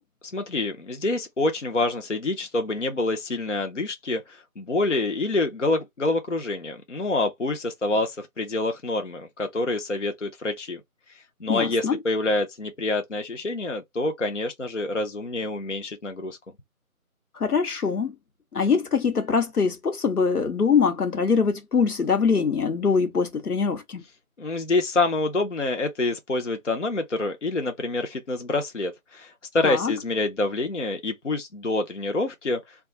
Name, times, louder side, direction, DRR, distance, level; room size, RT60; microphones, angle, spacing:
voice 1, 0.3-10.8 11.4-16.4 24.4-32.6, left 2 dB, 55° left, 0.6 m, -27 dB
voice 2, 11.5-12.0 17.3-18.1 18.5-24.0 29.6-29.9, left 5 dB, 85° left, 0.9 m, -23 dB
2.4 x 2.3 x 3.8 m
figure-of-eight pair, 180°, 44 cm